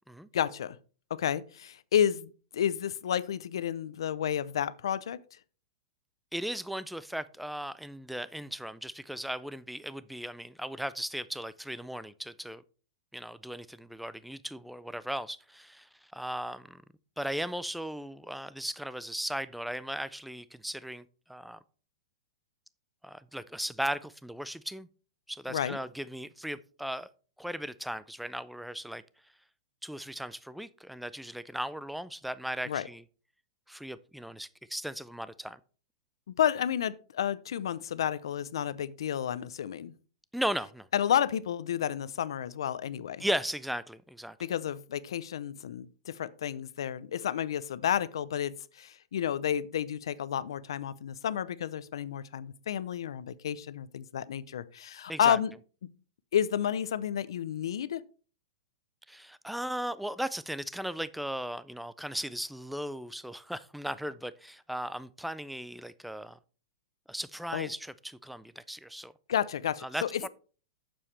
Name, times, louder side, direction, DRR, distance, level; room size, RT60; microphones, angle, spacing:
voice 1, 0.3-0.8 1.1-5.2 25.5-25.8 32.7-32.9 36.3-39.9 40.9-43.2 44.4-55.5 55.8-55.9 56.3-58.0 67.5-67.7 69.3-70.3, left 9 dB, 80° left, 0.6 m, -31 dB
voice 2, 6.3-12.6 13.1-16.8 17.2-21.6 23.0-24.9 25.3-27.1 27.4-29.0 29.8-33.0 33.7-35.6 40.3-40.9 43.2-44.4 55.1-55.4 59.1-66.4 67.1-69.1 69.8-70.3, equal, ahead, 0.3 m, -37 dB
8.6 x 7.0 x 3.3 m
supercardioid pair, 155°, 3 cm